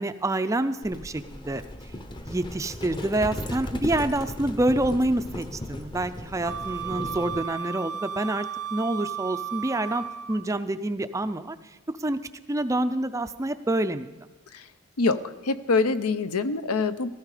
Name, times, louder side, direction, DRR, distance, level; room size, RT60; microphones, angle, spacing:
voice 1, 0.0-1.6 2.3-8.5 8.7-11.6 11.9-12.2 12.5-14.1, right 1 dB, 15° right, 11 dB, 0.4 m, -27 dB
Livestock farm animals working animals, 0.8-7.5, left 1 dB, 20° left, 0.7 m, -36 dB
Wind instrument woodwind instrument, 6.4-10.5, right 7 dB, 90° right, 0.6 m, -34 dB
voice 2, 15.0-17.1, left 3 dB, 85° left, 12 dB, 0.7 m, -25 dB
15.0 x 14.0 x 4.9 m, 1.2 s
head